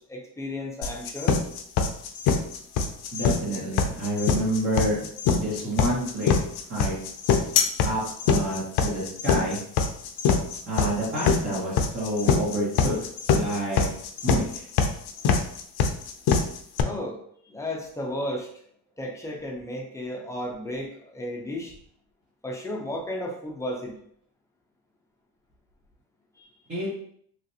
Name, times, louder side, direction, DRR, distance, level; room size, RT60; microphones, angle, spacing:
voice 1, 0.0-1.4 16.8-18.5 19.0-21.7 22.4-23.9 26.4-26.5, left 1 dB, 10° left, -1 dB, 0.4 m, -34 dB
sound 1, 0.8-16.8, left 6 dB, 75° left, 0.5 m, -23 dB
voice 2, 3.1-5.0 5.3-6.4 6.7-7.0 7.8-9.6 10.7-12.9 13.3-13.8 14.2-14.4 26.7-27.0, right 1 dB, 35° right, -7 dB, 1.1 m, -28 dB
3.2 x 2.5 x 2.7 m, 0.65 s
cardioid pair, 145°, 39 cm